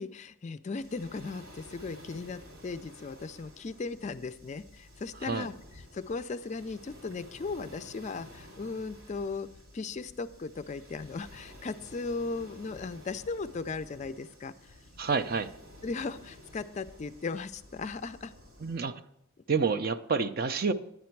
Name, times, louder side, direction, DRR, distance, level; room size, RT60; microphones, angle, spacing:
voice 1, 0.0-5.5 5.9-14.8 15.8-18.3, left 4 dB, 35° left, 13 dB, 0.3 m, -37 dB
Waves surf, 0.7-18.8, equal, 90° right, 3.0 m, -52 dB
voice 2, 15.0-15.5 18.6-19.0 19.5-20.7, right 5 dB, 45° right, 10 dB, 0.5 m, -28 dB
10.5 x 9.4 x 4.5 m, 0.77 s
head